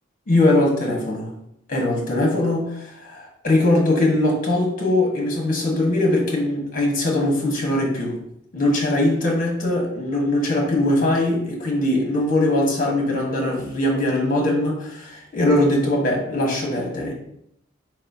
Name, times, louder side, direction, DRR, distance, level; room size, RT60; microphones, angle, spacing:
voice 1, 0.3-1.3 1.7-8.2 8.5-17.1, left 1 dB, 40° left, -1 dB, 1.2 m, -21 dB
4.6 x 4.1 x 2.8 m, 0.76 s
head